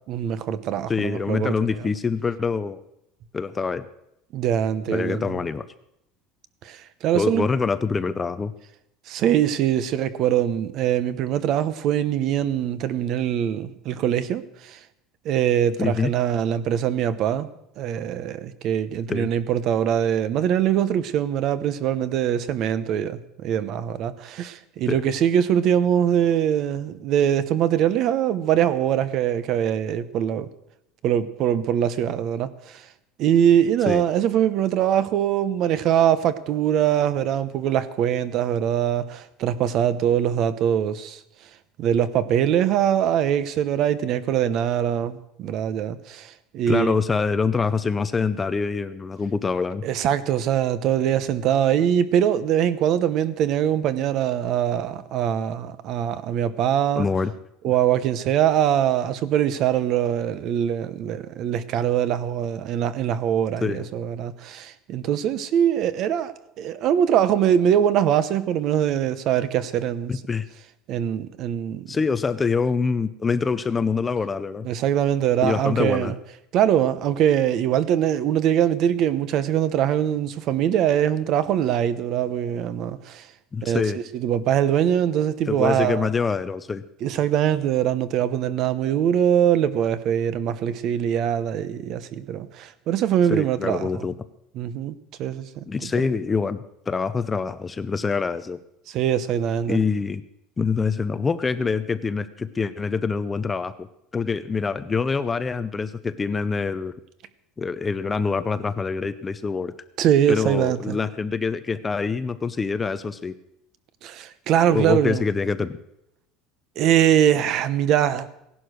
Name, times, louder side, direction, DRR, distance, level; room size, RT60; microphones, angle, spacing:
voice 1, 0.1-1.9 4.3-5.4 6.6-7.5 9.1-14.8 15.2-17.5 17.8-30.5 31.0-32.9 33.2-41.2 41.8-46.9 49.8-57.1 57.6-70.1 70.9-72.0 74.6-76.1 76.5-83.3 83.6-86.1 87.0-94.1 94.5-96.0 98.9-99.8 110.0-111.0 114.0-115.2 116.8-118.4, right 10 dB, 40° right, 0.9 m, -23 dB
voice 2, 0.9-2.8 3.3-3.8 4.9-5.6 7.1-8.5 15.8-16.1 19.1-19.3 24.9-25.0 33.9-34.0 46.7-49.8 57.0-57.3 63.6-63.9 70.1-70.4 71.9-74.7 75.4-76.1 83.5-84.0 85.5-86.8 93.3-94.1 95.7-98.6 99.7-100.2 100.6-103.9 104.1-106.9 107.6-109.7 110.3-113.3 114.7-115.8, left 5 dB, 15° left, 0.5 m, -25 dB
17.0 x 11.5 x 6.4 m
cardioid pair, 170°, 0 cm